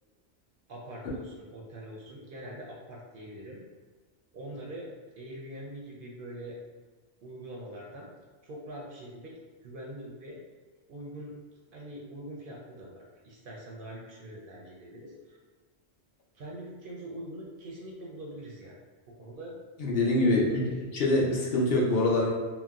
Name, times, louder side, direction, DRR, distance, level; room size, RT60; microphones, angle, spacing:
voice 1, 0.7-3.6 4.3-4.9 5.2-6.6 7.2-8.1 8.4-9.3 9.6-10.4 10.9-11.3 11.7-15.4 16.3-18.8 19.1-19.6 20.2-20.8, right 1 dB, 60° right, -3 dB, 0.7 m, -43 dB
voice 2, 19.8-20.6 20.9-22.3, left 2 dB, 65° left, -4 dB, 0.8 m, -24 dB
4.0 x 2.0 x 2.4 m, 1.4 s
omnidirectional pair, 1.2 m